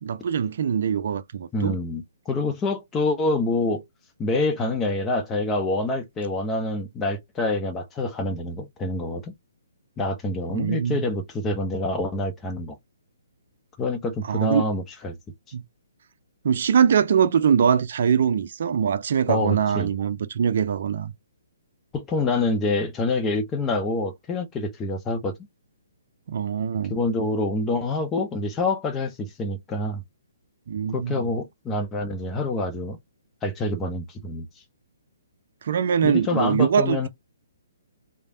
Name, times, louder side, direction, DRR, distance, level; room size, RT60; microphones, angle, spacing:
voice 1, 0.0-1.8 10.5-11.1 14.3-14.6 15.5-15.6 16.4-21.1 26.3-26.9 30.7-31.2 35.6-37.0, right 7 dB, 60° right, 0.4 m, -22 dB
voice 2, 1.5-3.8 4.2-9.3 10.0-12.8 13.8-15.2 19.3-19.9 21.9-25.3 26.9-30.0 30.9-33.0 33.4-34.5 36.0-37.1, left 2 dB, 15° left, 0.7 m, -26 dB
3.2 x 2.1 x 2.6 m
hypercardioid pair, 135°, 0 cm